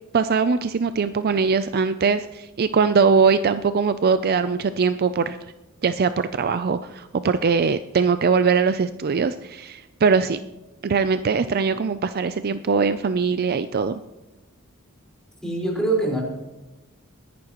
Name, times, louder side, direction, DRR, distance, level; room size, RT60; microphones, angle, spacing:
voice 1, 0.1-5.4 5.8-10.4 10.8-14.0, right 5 dB, 45° right, 12 dB, 0.4 m, -21 dB
voice 2, 15.4-16.2, right 2 dB, 5° left, -3 dB, 4.5 m, -23 dB
21.0 x 11.5 x 3.0 m, 1.0 s
head